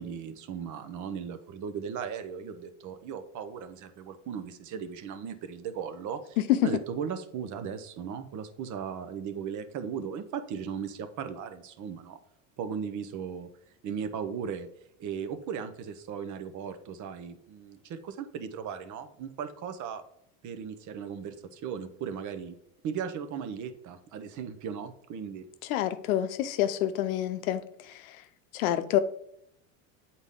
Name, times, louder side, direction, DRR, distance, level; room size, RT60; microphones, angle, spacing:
voice 1, 0.0-6.4 6.6-12.2 12.6-13.5 13.8-14.7 15.0-20.0 20.4-22.6 22.8-25.5, right 7 dB, 45° right, 0.8 m, -37 dB
voice 2, 25.7-27.6 28.5-29.0, left 12 dB, 85° left, 0.7 m, -27 dB
8.0 x 4.1 x 3.6 m
supercardioid pair, 100°, 41 cm